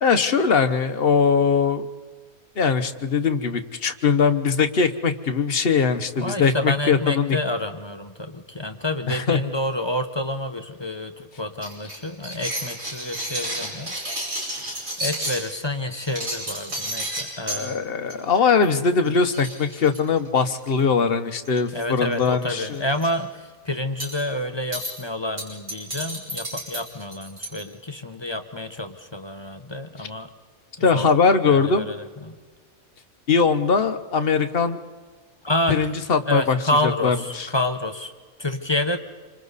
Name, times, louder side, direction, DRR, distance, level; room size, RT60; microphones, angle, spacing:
voice 1, 0.0-1.8 2.6-7.4 9.1-9.4 17.5-22.8 30.8-31.9 33.3-34.8 35.7-36.6 37.0-37.5, left 5 dB, 45° left, 9 dB, 1.1 m, -21 dB
voice 2, 6.2-13.9 15.0-17.8 21.7-30.3 30.8-31.1 31.4-32.4 35.4-35.9 36.3-38.1 38.4-39.0, left 1 dB, 20° left, 7 dB, 0.9 m, -28 dB
sound 1, 11.6-15.4 15.9-17.6 18.1-18.4 18.6-18.8 19.0-19.1 19.3-20.7 21.5-21.8 22.1-22.3 22.7-23.1 24.0-24.2 24.7-24.9 25.4-27.6, right 1 dB, 65° right, 6.3 m, -31 dB
27.0 x 25.0 x 4.1 m, 1.5 s
omnidirectional pair, 1.5 m